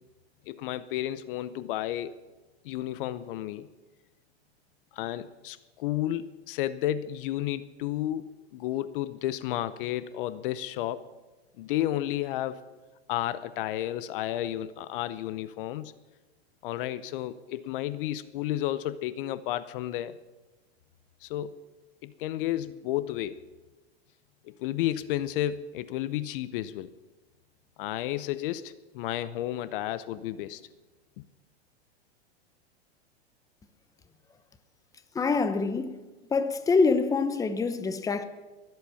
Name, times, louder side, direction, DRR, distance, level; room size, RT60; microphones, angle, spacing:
voice 1, 0.5-2.2 2.6-3.7 4.9-11.0 11.6-12.6 13.1-15.9 16.6-20.2 21.2-21.6 22.0-23.4 24.4-26.9 27.8-30.6, left 13 dB, 55° left, 0.7 m, -32 dB
voice 2, 35.1-35.9 36.3-38.2, left 4 dB, 10° left, 0.9 m, -25 dB
22.5 x 8.0 x 7.0 m
hypercardioid pair, 130°, 33 cm